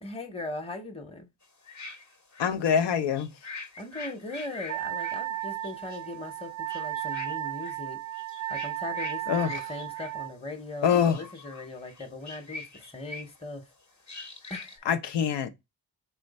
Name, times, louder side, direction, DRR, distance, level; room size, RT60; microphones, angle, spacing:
voice 1, 0.0-1.3 3.8-8.0 8.5-13.7 14.5-14.9, left 2 dB, 15° left, 0.8 m, -39 dB
sound 1, 1.4-7.8 8.1-10.2 10.7-13.5 14.0-14.8, left 3 dB, 40° left, 0.9 m, -44 dB
voice 2, 2.4-3.3 9.3-9.5 10.8-11.2 14.9-15.5, left 7 dB, 85° left, 0.6 m, -24 dB
Wind instrument woodwind instrument, 4.7-10.3, right 15 dB, 45° right, 0.5 m, -34 dB
3.3 x 3.1 x 4.0 m
cardioid pair, 55°, 41 cm